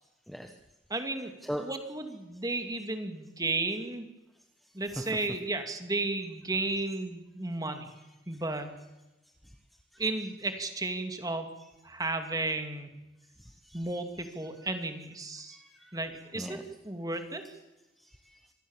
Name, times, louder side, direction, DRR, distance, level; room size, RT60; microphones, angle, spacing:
voice 1, 0.9-1.3 1.6-4.1 4.7-7.9 8.3-8.7 10.0-11.5 11.8-12.9 13.7-15.6 15.9-17.4, right 2 dB, 20° right, 6 dB, 2.6 m, -33 dB
voice 2, 13.4-13.9 14.6-14.7 15.5-16.0 16.3-16.6 18.0-18.5, equal, ahead, 4 dB, 1.2 m, -40 dB
26.0 x 19.0 x 7.3 m, 1.0 s
head